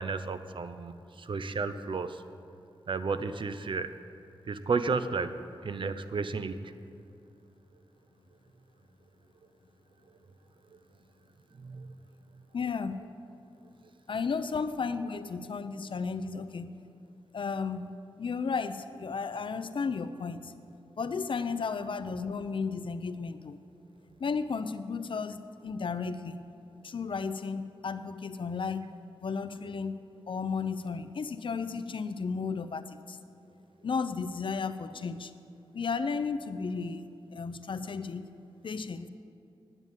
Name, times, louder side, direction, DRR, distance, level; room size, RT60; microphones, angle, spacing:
voice 1, 0.0-2.2 2.9-3.9 4.5-6.7 11.6-11.9, right 4 dB, 65° right, 11 dB, 0.6 m, -33 dB
voice 2, 12.5-13.0 14.1-16.8 17.3-20.5 21.0-23.6 24.2-26.4 26.8-28.8 29.2-30.0 30.3-33.2 33.8-35.3 35.7-38.3 38.6-39.1, left 5 dB, 65° left, 11 dB, 0.6 m, -34 dB
10.0 x 9.0 x 9.1 m, 2.5 s
wide cardioid pair, 105°, 9 cm